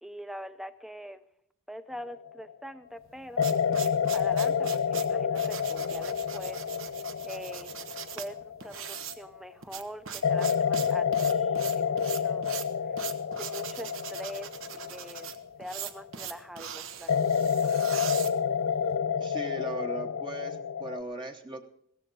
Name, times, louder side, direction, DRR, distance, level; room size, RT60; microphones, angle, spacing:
voice 1, 0.0-1.2 1.7-3.8 4.1-6.6 7.2-7.7 8.1-12.5 12.9-13.0 13.4-15.3 15.6-17.7, equal, ahead, 11 dB, 0.7 m, -43 dB
sound 1, 2.0-2.4 3.4-9.3 10.2-16.2 17.1-21.0, left 7 dB, 65° left, 0.5 m, -29 dB
sound 2, 3.0-19.0, right 8 dB, 65° right, 1.1 m, -41 dB
voice 2, 19.2-21.7, right 1 dB, 25° right, 4 dB, 1.0 m, -38 dB
16.5 x 14.5 x 4.0 m, 0.71 s
head